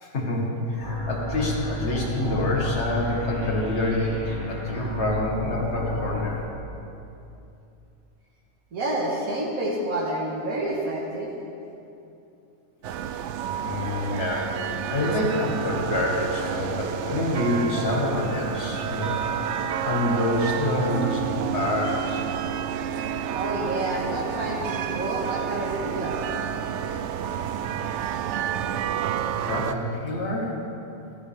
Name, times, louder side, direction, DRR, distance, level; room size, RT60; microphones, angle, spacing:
voice 1, 0.0-6.4 13.6-14.5 14.9-19.1 19.4-22.2 29.2-30.6, left 1 dB, 50° left, -1 dB, 2.1 m, -27 dB
sound 1, 0.8-6.4, left 1 dB, 20° left, 2.2 m, -31 dB
voice 2, 8.7-11.3 23.3-26.3, right 1 dB, 80° right, -4 dB, 2.1 m, -28 dB
sound 2, 12.8-29.7, right 8 dB, 65° right, 0.8 m, -30 dB
15.5 x 14.0 x 3.6 m, 2.7 s
omnidirectional pair, 1.5 m